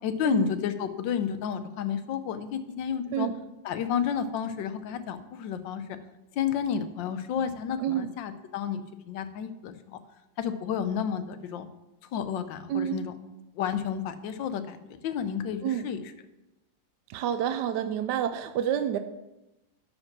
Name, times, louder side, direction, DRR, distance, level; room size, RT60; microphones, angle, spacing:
voice 1, 0.0-3.3 3.6-6.0 6.3-10.0 10.4-11.7 12.1-13.2 13.5-14.8 15.0-16.1, left 8 dB, 80° left, 11 dB, 1.4 m, -31 dB
voice 2, 12.7-13.0 15.6-15.9 17.1-19.0, right 10 dB, 75° right, 9 dB, 1.2 m, -28 dB
11.5 x 5.3 x 6.0 m, 0.97 s
omnidirectional pair, 2.0 m